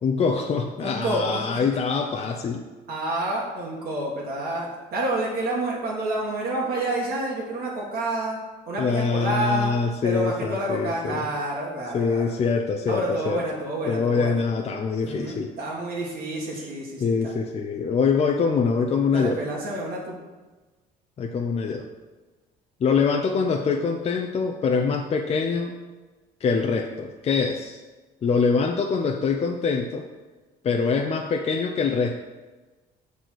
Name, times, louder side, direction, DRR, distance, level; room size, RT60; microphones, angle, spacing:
voice 1, 0.0-2.6 8.8-11.3 11.9-13.4 13.9-15.5 17.0-19.4 21.2-21.8 22.8-25.8 26.4-27.8 28.2-30.1 30.6-32.1, left 5 dB, 35° left, 3 dB, 0.6 m, -24 dB
voice 2, 0.8-1.6 2.9-8.4 8.7-9.7 10.0-12.5 12.9-14.4 15.0-17.3 19.1-20.2, right 1 dB, 65° right, -3 dB, 1.9 m, -29 dB
6.3 x 4.1 x 6.3 m, 1.2 s
cardioid pair, 110°, 17 cm